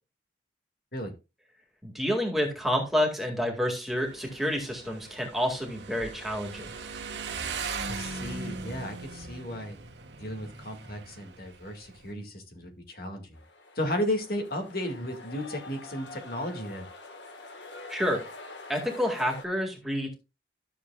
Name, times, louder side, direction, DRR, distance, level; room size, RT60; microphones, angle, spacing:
voice 1, 1.8-6.7 17.9-18.2 18.7-20.1, equal, ahead, 0 dB, 2.0 m, -29 dB
Motorcycle, 3.9-12.1, right 4 dB, 80° right, 1.3 m, -39 dB
voice 2, 7.9-9.8 10.2-13.4 13.8-16.8, left 1 dB, 55° left, 3 dB, 2.0 m, -34 dB
sound 1, 13.3-19.4, left 3 dB, 85° left, 1.5 m, -45 dB
13.0 x 7.0 x 2.3 m, 0.28 s
head